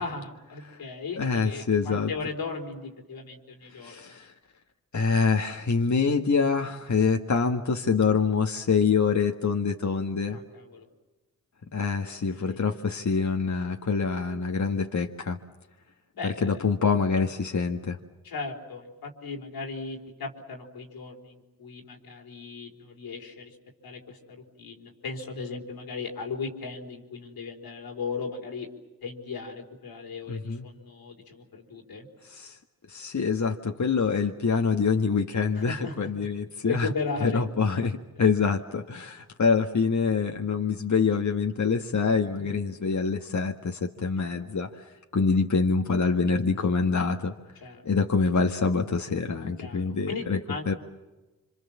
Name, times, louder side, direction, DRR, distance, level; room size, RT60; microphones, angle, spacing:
voice 1, 0.0-4.1 10.3-10.9 12.4-12.6 16.1-16.6 18.2-23.6 23.8-28.7 29.0-32.1 35.6-36.3 36.6-37.4 38.2-38.3 42.4-42.6 44.2-44.5 47.6-47.8 49.6-50.8, left 4 dB, 90° left, 1 dB, 4.3 m, -37 dB
voice 2, 1.2-2.1 3.8-4.3 4.9-10.4 11.7-15.4 16.2-18.0 30.3-30.7 32.3-32.6 32.9-36.9 37.2-44.9 45.1-47.4 47.8-50.7, left 5 dB, 55° left, 3 dB, 1.8 m, -25 dB
27.0 x 25.5 x 7.4 m, 1.1 s
cardioid pair, 40°, 35 cm